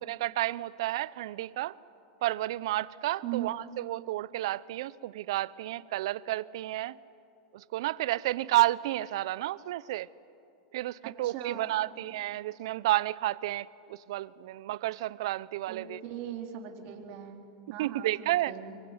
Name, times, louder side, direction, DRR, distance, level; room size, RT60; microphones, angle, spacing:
voice 1, 0.0-1.7 2.2-6.9 7.5-10.1 10.7-16.0 17.8-18.5, right 16 dB, 70° right, 19 dB, 0.7 m, -31 dB
voice 2, 11.0-11.9 15.7-17.4 17.7-18.8, right 10 dB, 55° right, 3 dB, 3.8 m, -39 dB
26.0 x 23.0 x 9.7 m, 2.6 s
hypercardioid pair, 110°, 3 cm